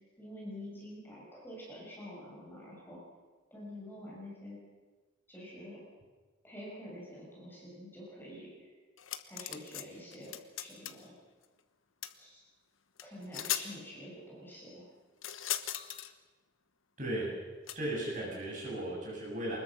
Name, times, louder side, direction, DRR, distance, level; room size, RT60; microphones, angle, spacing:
voice 1, 0.2-3.0 3.5-4.6 5.3-5.8 6.4-8.7 9.2-11.1 12.2-12.4 13.0-14.9, equal, 10° left, -5 dB, 6.8 m, -47 dB
sound 1, 9.0-9.8 10.1-11.0 12.0-12.1 13.0-13.1 13.3-13.7 15.2-16.1 17.7-17.8, left 11 dB, 80° left, 1.2 m, -37 dB
voice 2, 17.0-17.3 17.7-19.6, right 1 dB, 40° right, -3 dB, 7.7 m, -36 dB
24.5 x 21.0 x 6.3 m, 1.3 s
head